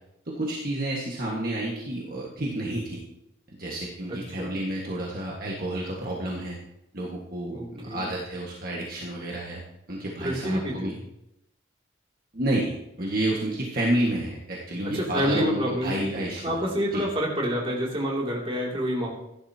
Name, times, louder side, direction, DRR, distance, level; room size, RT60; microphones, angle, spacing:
voice 1, 0.3-3.0 3.6-6.6 6.9-9.6 9.9-10.9 12.3-16.6 16.9-17.0, right 1 dB, 50° right, -3 dB, 1.7 m, -30 dB
voice 2, 4.1-4.5 7.5-8.1 10.2-10.9 14.9-19.1, equal, 30° right, -3 dB, 2.8 m, -28 dB
16.0 x 11.0 x 2.9 m, 0.86 s
head